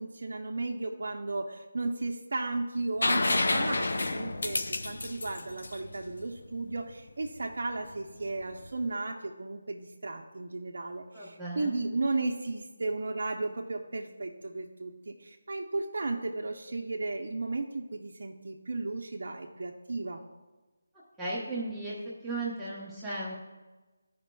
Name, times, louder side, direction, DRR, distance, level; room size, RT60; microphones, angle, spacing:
voice 1, 0.0-20.2, right 3 dB, 65° right, 1 dB, 0.6 m, -34 dB
sound 1, 3.0-6.7 8.6-8.7, left 2 dB, 70° left, 0.5 m, -29 dB
voice 2, 11.1-11.7 21.2-21.9 22.2-23.4, right 2 dB, ahead, -12 dB, 0.9 m, -35 dB
14.0 x 5.1 x 2.3 m, 1.2 s
figure-of-eight pair, 170°, 0 cm